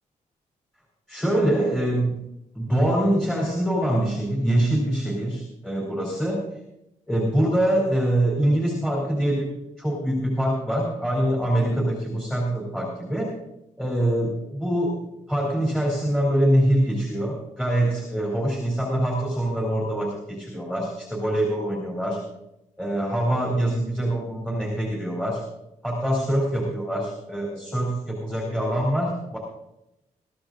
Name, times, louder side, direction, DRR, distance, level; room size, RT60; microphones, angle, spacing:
voice 1, 1.1-2.1 2.5-6.4 7.1-13.3 13.8-14.9 15.3-22.2 22.8-25.4 25.8-29.4, right 1 dB, 5° left, -3 dB, 3.5 m, -24 dB
22.0 x 13.5 x 2.6 m, 0.86 s
wide cardioid pair, 150°, 14 cm